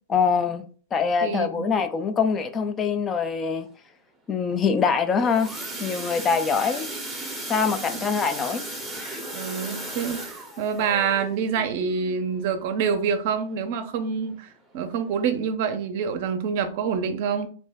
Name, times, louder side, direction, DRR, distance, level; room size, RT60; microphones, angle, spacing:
voice 1, 0.1-0.6 0.9-3.7 4.3-5.5 5.8-6.9 7.5-8.7, left 6 dB, 25° left, 0.4 m, -24 dB
voice 2, 1.2-1.7 8.0-8.1 9.3-14.5 14.7-17.5, right 6 dB, 55° right, 0.5 m, -26 dB
sound 1, 4.9-13.5 14.0-14.2 14.5-14.6 15.1-15.2, right 1 dB, 5° right, 0.7 m, -36 dB
2.6 x 2.1 x 3.4 m
hypercardioid pair, 115°, 0 cm